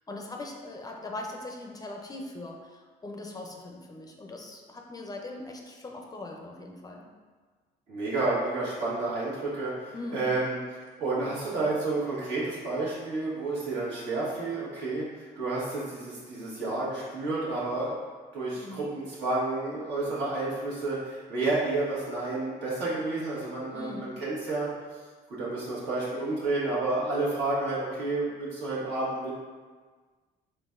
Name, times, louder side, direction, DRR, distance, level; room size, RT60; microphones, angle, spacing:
voice 1, 0.1-7.0 9.9-10.3 18.6-18.9 23.7-24.1, left 2 dB, 20° left, 1 dB, 0.4 m, -40 dB
voice 2, 7.9-10.6 11.0-18.0 18.3-24.7 25.4-29.4, right 2 dB, 85° right, -7 dB, 1.4 m, -30 dB
3.9 x 3.4 x 2.4 m, 1.5 s
cardioid pair, 105°, 18 cm